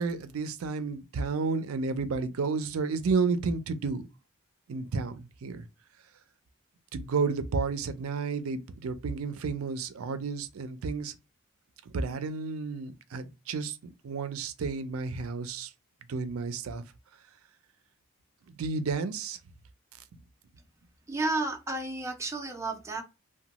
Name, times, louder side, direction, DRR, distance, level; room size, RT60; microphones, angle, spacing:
voice 1, 0.0-4.1 4.7-5.7 6.9-11.2 11.9-13.8 14.0-15.7 16.1-16.8 18.5-19.4, right 4 dB, 85° right, 0.4 m, -31 dB
voice 2, 21.1-23.0, right 2 dB, 15° right, 0.4 m, -32 dB
3.0 x 2.2 x 2.8 m
head